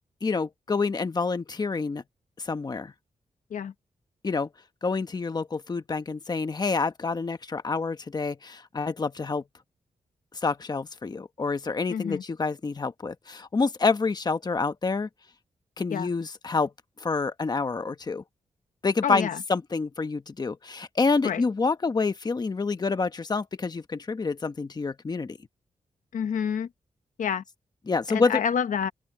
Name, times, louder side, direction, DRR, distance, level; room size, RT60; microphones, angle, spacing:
voice 1, 0.2-2.0 2.4-2.9 4.2-4.5 4.8-9.4 10.4-15.1 15.8-16.7 17.0-18.2 18.8-25.4 27.9-28.4, left 4 dB, 30° left, 1.1 m, -27 dB
voice 2, 11.9-12.2 15.9-16.1 19.0-19.4 21.2-21.4 26.1-26.7 27.2-27.4 28.1-28.9, left 7 dB, 80° left, 1.0 m, -28 dB
open air
wide cardioid pair, 125°, 13 cm